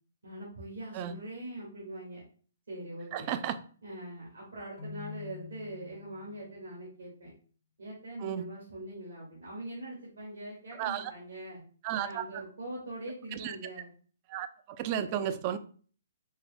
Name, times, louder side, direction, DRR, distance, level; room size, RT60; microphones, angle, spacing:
voice 1, 0.2-2.2 2.7-3.3 3.8-7.3 7.8-11.6 11.9-13.9, right 1 dB, 80° right, -6 dB, 1.5 m, -42 dB
voice 2, 3.1-3.6 8.2-8.4 10.8-11.1 11.8-12.2 13.3-13.6 14.3-15.6, right 10 dB, 35° right, 11 dB, 0.3 m, -33 dB
Keyboard (musical), 4.8-6.6, left 7 dB, 45° left, 0.5 m, -46 dB
4.4 x 2.0 x 3.2 m, 0.42 s
hypercardioid pair, 140°, 0 cm